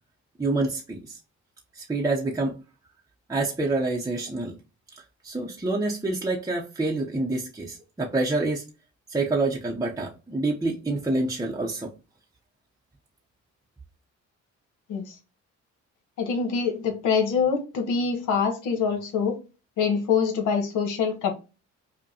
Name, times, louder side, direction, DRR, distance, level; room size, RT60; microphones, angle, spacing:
voice 1, 0.4-1.2 1.7-2.6 3.3-4.6 4.9-8.6 9.1-11.9, right 2 dB, 10° right, 0.7 m, -27 dB
voice 2, 16.2-19.3 19.8-21.3, left 6 dB, 85° left, 1.1 m, -25 dB
5.2 x 2.2 x 2.8 m
cardioid pair, 90°, 30 cm